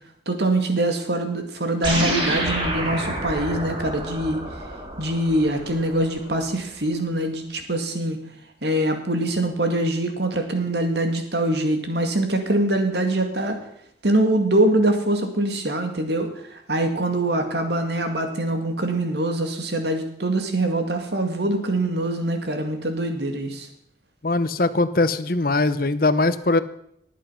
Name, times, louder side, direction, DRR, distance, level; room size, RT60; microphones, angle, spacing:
voice 1, 0.3-4.4 5.0-8.2 8.6-13.6 14.0-23.7, right 1 dB, 65° right, 5 dB, 2.2 m, -23 dB
sound 1, 1.8-6.5, right 1 dB, 30° right, 3.6 m, -28 dB
voice 2, 24.2-26.6, left 2 dB, 50° left, 13 dB, 0.8 m, -21 dB
19.0 x 8.4 x 5.8 m, 0.72 s
head